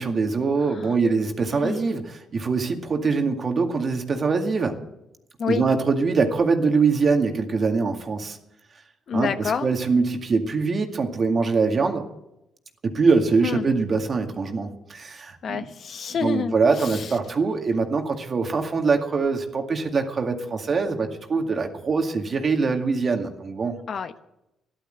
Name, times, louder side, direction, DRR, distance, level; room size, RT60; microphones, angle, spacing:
voice 1, 0.0-2.0 2.3-4.7 5.5-8.4 9.1-12.0 12.8-15.7 16.2-23.7, right 4 dB, 40° right, 4 dB, 2.1 m, -23 dB
voice 2, 9.1-9.7 13.4-13.7 15.4-17.1 23.9-24.2, left 6 dB, 55° left, 9 dB, 1.0 m, -28 dB
14.0 x 11.5 x 7.9 m, 0.87 s
cardioid pair, 90°, 0 cm